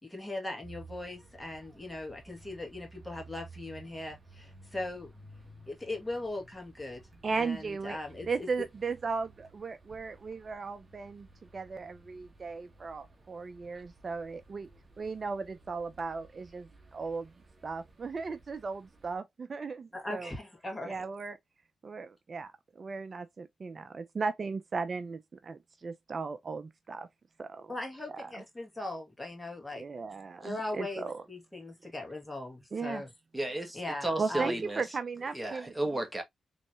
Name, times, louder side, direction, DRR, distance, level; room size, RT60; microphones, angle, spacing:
voice 1, 0.0-5.1 5.7-8.5 19.9-21.1 27.7-29.8 30.4-33.1 33.7-34.6, left 2 dB, 15° left, 1.8 m, -39 dB
sound 1, 0.6-19.2, right 3 dB, 30° right, 1.4 m, -56 dB
voice 2, 7.2-11.3 11.5-14.7 15.0-17.3 17.6-20.3 20.8-21.4 21.8-27.1 27.4-27.7 28.1-28.3 29.8-31.2 32.7-33.0 34.2-35.7, right 4 dB, 50° right, 0.5 m, -36 dB
voice 3, 33.3-34.8 35.3-36.2, right 1 dB, 10° right, 1.6 m, -33 dB
4.1 x 3.2 x 2.7 m
supercardioid pair, 55°, 0 cm